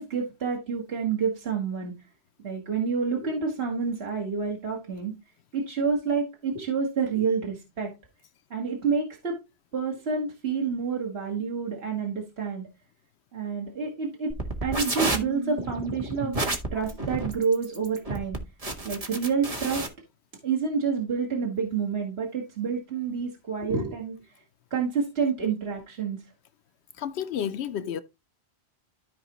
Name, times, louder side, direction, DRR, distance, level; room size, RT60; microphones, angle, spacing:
voice 1, 0.0-1.9 2.4-5.1 5.5-7.9 8.5-9.4 9.7-12.7 13.3-14.3 14.6-16.4 16.7-18.4 18.8-19.9 20.4-24.4 24.7-26.2, right 5 dB, 75° right, 1.8 m, -28 dB
sound 1, 14.3-19.9, right 2 dB, 35° right, 1.5 m, -30 dB
voice 2, 27.0-28.0, left 9 dB, 80° left, 0.8 m, -31 dB
13.5 x 4.8 x 3.0 m
omnidirectional pair, 1.1 m